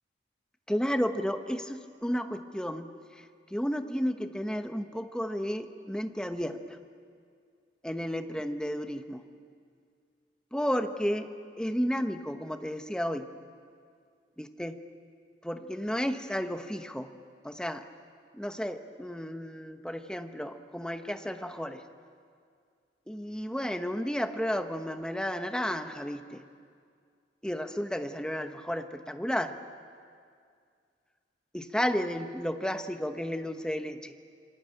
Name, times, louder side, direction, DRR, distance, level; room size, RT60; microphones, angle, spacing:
voice 1, 0.7-2.9 3.5-6.8 7.8-9.2 10.5-11.3 11.6-13.3 14.4-14.8 15.4-17.1 17.4-17.8 18.3-21.8 23.1-26.4 27.4-29.5 31.5-34.1, equal, 5° left, 7 dB, 1.1 m, -32 dB
27.0 x 24.0 x 9.0 m, 2.2 s
head